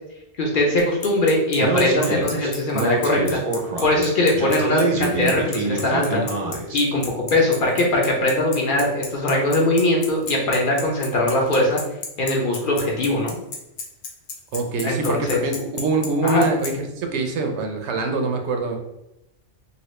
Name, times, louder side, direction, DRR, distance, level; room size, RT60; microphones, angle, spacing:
voice 1, 0.4-3.4 3.8-6.2 6.7-11.8 12.2-13.4 14.8-15.4 16.2-16.5, left 1 dB, 55° left, -1 dB, 0.7 m, -21 dB
Bicycle, 0.8-16.7, left 5 dB, 75° left, 1.0 m, -32 dB
Speech, 1.6-6.8, right 3 dB, 55° right, 0.4 m, -25 dB
voice 2, 14.5-18.8, right 3 dB, 75° right, 4 dB, 0.8 m, -24 dB
2.9 x 2.6 x 3.1 m, 0.89 s
omnidirectional pair, 1.2 m